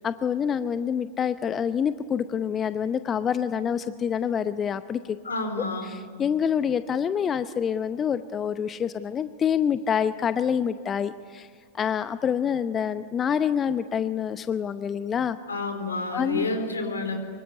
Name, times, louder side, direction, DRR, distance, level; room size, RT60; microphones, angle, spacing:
voice 1, 0.0-5.2 5.9-11.5 11.7-15.4 16.1-16.5, left 8 dB, 25° left, 13 dB, 0.7 m, -26 dB
voice 2, 5.2-5.9 15.5-17.2, left 2 dB, 75° left, 7 dB, 4.3 m, -29 dB
25.5 x 24.0 x 9.8 m, 2.1 s
figure-of-eight pair, 90°, 0 cm